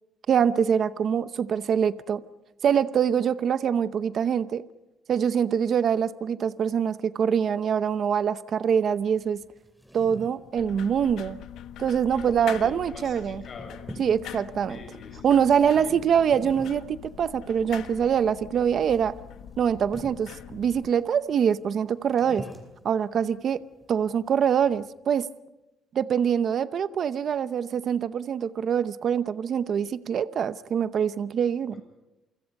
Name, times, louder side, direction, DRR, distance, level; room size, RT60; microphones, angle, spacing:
voice 1, 0.3-2.2 2.6-4.6 5.1-9.4 9.9-11.4 11.8-13.4 14.0-14.8 15.2-19.2 19.6-22.5 22.8-23.6 23.9-25.3 25.9-31.8, right 8 dB, 45° right, 0.7 m, -24 dB
sound 1, 9.0-24.9, equal, ahead, 3.0 m, -48 dB
sound 2, 10.5-20.9, left 10 dB, 75° left, 1.3 m, -43 dB
voice 2, 12.1-13.8 14.7-16.0 31.7-31.8, left 3 dB, 35° left, 7.3 m, -46 dB
28.5 x 25.0 x 5.4 m
cardioid pair, 160°, 0 cm